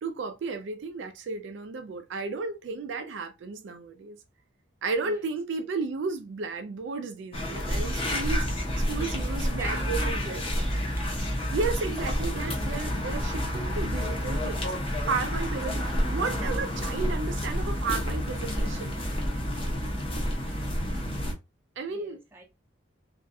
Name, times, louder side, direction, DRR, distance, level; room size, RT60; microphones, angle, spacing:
voice 1, 0.0-4.2 4.8-10.4 11.4-14.7 15.1-15.8 16.1-19.0 21.8-22.2, right 4 dB, 65° right, 0.3 m, -33 dB
sound 1, 7.3-21.3, equal, 30° left, 0.6 m, -29 dB
voice 2, 8.8-9.2 9.5-11.1 13.4-14.4 21.9-22.4, right 1 dB, 10° right, 0.5 m, -44 dB
2.4 x 2.2 x 2.5 m
head